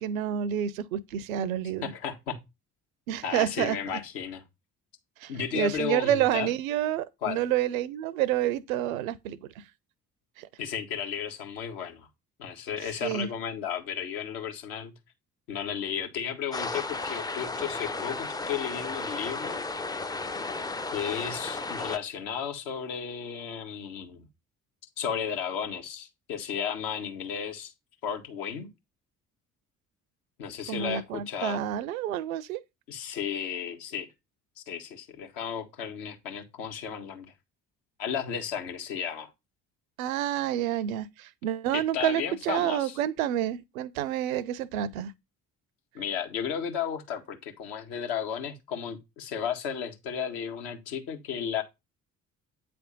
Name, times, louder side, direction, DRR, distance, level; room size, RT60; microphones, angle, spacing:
voice 1, 0.0-1.9 3.1-3.8 5.2-9.4 10.4-10.5 13.0-13.3 30.7-32.6 40.0-45.1, right 11 dB, 70° right, 0.6 m, -29 dB
voice 2, 1.8-2.4 3.2-4.4 5.3-6.5 7.2-7.4 10.6-12.1 12.4-14.9 15.5-19.6 20.9-24.2 25.0-27.7 28.0-28.7 30.4-31.6 32.9-34.1 34.6-37.3 38.0-39.3 41.7-43.0 45.9-51.6, left 8 dB, 60° left, 1.4 m, -34 dB
sound 1, 16.5-22.0, left 3 dB, 10° left, 0.5 m, -34 dB
8.7 x 3.4 x 5.2 m
figure-of-eight pair, 50°, 44 cm